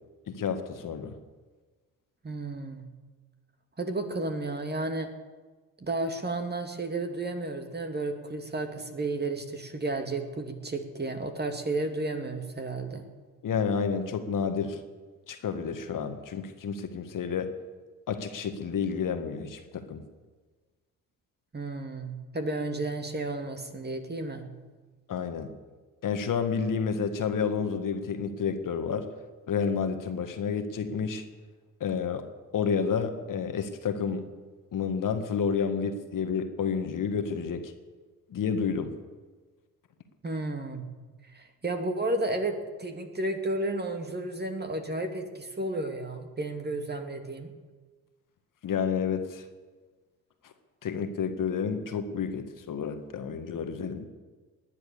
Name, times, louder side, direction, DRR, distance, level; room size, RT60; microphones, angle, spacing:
voice 1, 0.3-1.1 13.4-14.8 15.3-17.5 18.1-20.0 25.1-25.5 26.0-29.1 29.5-31.2 31.8-32.2 32.5-34.2 34.7-37.7 38.3-38.9 48.6-49.4 50.8-54.1, left 6 dB, 45° left, 7 dB, 1.7 m, -30 dB
voice 2, 2.2-2.9 3.8-5.1 5.8-13.1 21.5-24.5 40.2-40.9 41.3-47.5, right 2 dB, 25° right, 5 dB, 2.4 m, -32 dB
19.0 x 11.0 x 6.9 m, 1.3 s
hypercardioid pair, 50°, 43 cm